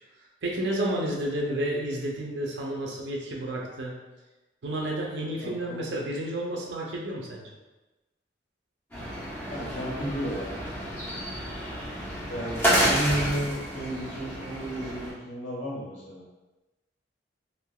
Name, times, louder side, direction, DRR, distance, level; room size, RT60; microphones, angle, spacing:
voice 1, 0.4-4.0 4.6-7.5, right 1 dB, 75° right, -2 dB, 0.5 m, -31 dB
voice 2, 5.4-5.8 9.5-10.6 12.3-16.2, right 1 dB, 80° left, -8 dB, 1.5 m, -33 dB
sound 1, 8.9-15.1, equal, 10° left, 0.9 m, -30 dB
3.5 x 2.5 x 2.2 m, 1.1 s
head